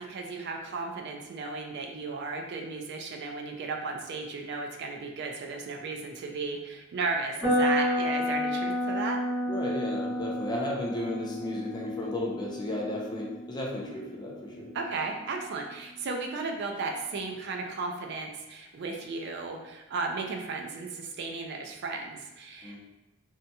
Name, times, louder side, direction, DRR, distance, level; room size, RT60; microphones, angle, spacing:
voice 1, 0.0-9.2 14.7-22.8, right 3 dB, 55° right, 3 dB, 0.3 m, -35 dB
sound 1, 7.4-15.3, left 1 dB, ahead, 1.0 m, -31 dB
voice 2, 9.5-14.7 22.6-22.8, left 1 dB, 20° left, -2 dB, 0.5 m, -34 dB
2.7 x 2.6 x 2.2 m, 1.0 s
head